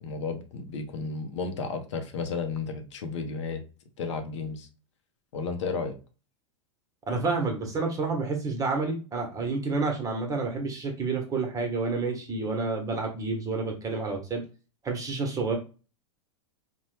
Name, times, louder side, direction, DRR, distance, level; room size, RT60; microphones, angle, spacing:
voice 1, 0.0-3.6 4.0-4.7 5.3-5.9, left 4 dB, 75° left, 6 dB, 0.7 m, -33 dB
voice 2, 7.1-14.4 14.8-15.6, right 3 dB, 20° right, 2 dB, 1.0 m, -29 dB
2.9 x 2.2 x 3.1 m, 0.34 s
hypercardioid pair, 110°, 15 cm